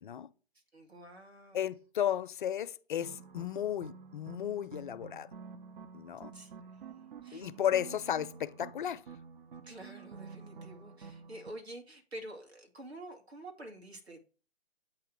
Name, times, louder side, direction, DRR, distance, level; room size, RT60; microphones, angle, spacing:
voice 1, 0.5-1.7 6.3-7.5 9.6-14.2, right 1 dB, 90° right, 2.3 m, -48 dB
voice 2, 1.5-5.3 5.9-6.3 7.3-9.0, left 10 dB, 50° left, 0.5 m, -34 dB
sound 1, 3.0-11.5, right 6 dB, 55° right, 0.6 m, -49 dB
8.3 x 2.9 x 6.0 m
figure-of-eight pair, 130°, 31 cm